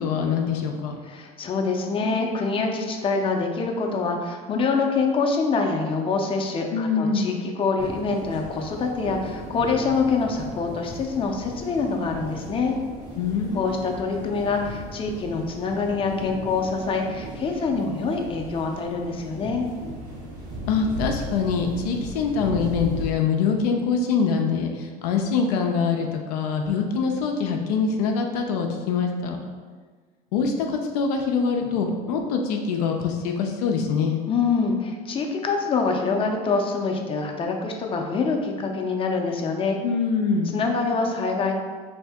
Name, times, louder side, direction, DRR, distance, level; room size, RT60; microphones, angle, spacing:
voice 1, 0.0-1.0 6.7-7.4 13.2-13.9 20.7-29.4 30.3-34.2 39.8-40.6, left 5 dB, 85° left, 3 dB, 0.4 m, -24 dB
voice 2, 1.1-12.8 13.5-19.7 34.3-39.8 40.5-41.5, left 4 dB, 30° left, 2 dB, 0.5 m, -25 dB
sound 1, 7.8-23.1, right 1 dB, 80° right, 0.9 m, -37 dB
2.7 x 2.6 x 3.4 m, 1.5 s
supercardioid pair, 90°, 20 cm